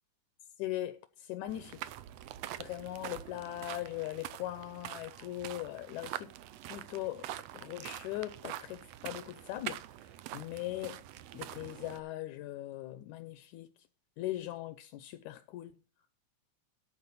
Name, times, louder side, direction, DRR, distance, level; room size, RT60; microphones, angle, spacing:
voice 1, 0.6-1.8 2.6-6.3 6.7-7.3 7.5-11.0 11.3-13.7 14.2-15.7, left 15 dB, 80° left, 2.0 m, -40 dB
sound 1, 1.5-12.0, right 13 dB, 80° right, 1.5 m, -45 dB
12.0 x 4.7 x 7.0 m
omnidirectional pair, 3.5 m